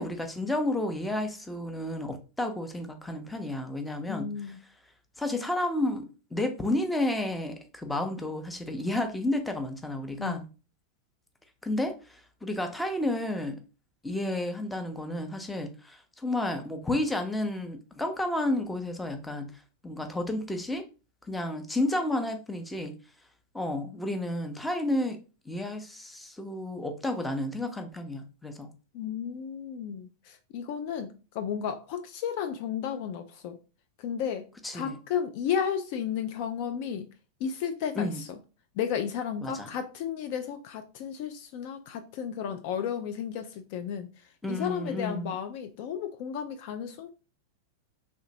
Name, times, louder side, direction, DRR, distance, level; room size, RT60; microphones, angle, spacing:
voice 1, 0.0-4.3 5.2-10.4 11.6-13.6 14.0-19.5 19.8-20.8 21.3-22.9 23.5-25.2 25.5-28.7 34.6-35.0 37.9-38.2 39.4-39.7 44.4-45.4, left 1 dB, 5° left, 0.6 m, -31 dB
voice 2, 4.1-4.6 10.2-10.4 28.9-33.6 34.0-34.5 34.7-37.1 37.4-38.3 38.8-44.1 44.5-47.1, left 8 dB, 45° left, 0.3 m, -33 dB
3.3 x 2.8 x 2.7 m
figure-of-eight pair, 90°, 0 cm